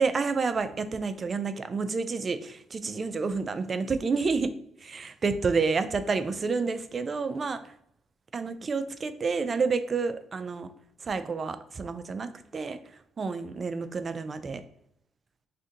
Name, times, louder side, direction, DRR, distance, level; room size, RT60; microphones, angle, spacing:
voice 1, 0.0-4.5 4.8-7.6 8.3-10.7 11.1-12.8 13.2-14.6, right 4 dB, 40° right, 11 dB, 0.3 m, -29 dB
2.5 x 2.5 x 3.7 m, 0.70 s
cardioid pair, 90°, 0 cm